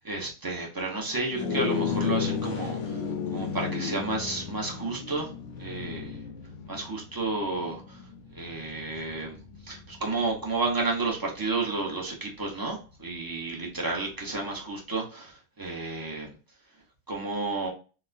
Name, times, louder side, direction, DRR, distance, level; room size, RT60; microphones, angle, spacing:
voice 1, 0.0-2.8 3.3-5.3 5.6-6.2 6.7-8.0 8.3-9.4 9.7-15.3 15.6-16.3 17.1-17.7, right 3 dB, 25° right, -1 dB, 0.5 m, -31 dB
sound 1, 1.3-10.9, left 6 dB, 65° left, 0.8 m, -34 dB
4.0 x 2.1 x 2.5 m, 0.36 s
omnidirectional pair, 1.6 m